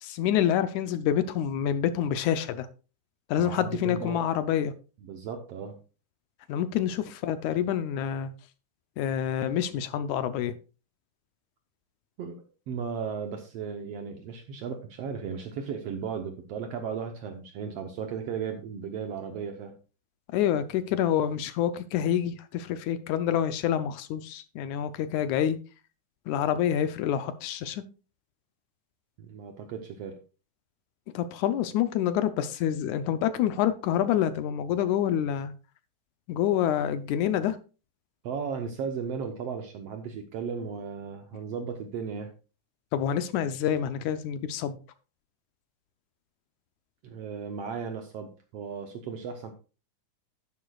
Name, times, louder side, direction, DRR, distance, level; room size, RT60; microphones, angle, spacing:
voice 1, 0.0-2.7 3.3-4.7 6.5-8.3 9.0-10.5 20.3-25.6 26.3-27.8 31.1-35.5 36.3-37.6 42.9-44.8, left 10 dB, 75° left, 1.9 m, -27 dB
voice 2, 3.4-4.2 5.0-5.8 12.2-19.7 29.2-30.2 38.2-42.3 47.0-49.5, right 6 dB, 70° right, 1.6 m, -35 dB
11.5 x 10.0 x 2.3 m
omnidirectional pair, 3.7 m